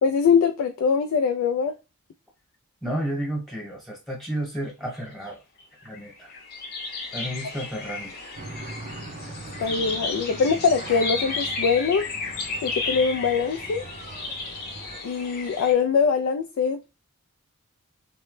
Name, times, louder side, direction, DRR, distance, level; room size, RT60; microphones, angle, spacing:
voice 1, 0.0-1.7 9.6-12.1 12.6-13.8 15.0-16.8, left 5 dB, 65° left, 0.3 m, -22 dB
voice 2, 2.8-5.4 5.8-6.3 7.1-8.3, right 1 dB, ahead, 1.1 m, -32 dB
sound 1, 5.3-5.4 5.6-15.7, left 3 dB, 45° left, 0.8 m, -33 dB
sound 2, 8.4-15.0, right 2 dB, 35° right, 0.4 m, -41 dB
3.0 x 2.1 x 3.1 m
head